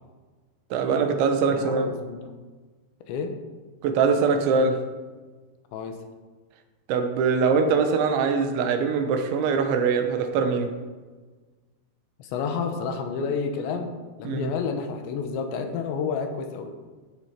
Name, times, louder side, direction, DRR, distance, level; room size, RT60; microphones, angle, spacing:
voice 1, 0.7-1.9 3.8-4.8 6.9-10.7 14.3-14.5, right 5 dB, 85° right, 6 dB, 3.5 m, -23 dB
voice 2, 1.5-2.3 3.1-3.4 5.7-6.0 12.2-13.9 14.2-16.8, left 5 dB, 80° left, 6 dB, 3.4 m, -30 dB
14.5 x 7.4 x 5.1 m, 1.4 s
omnidirectional pair, 5.2 m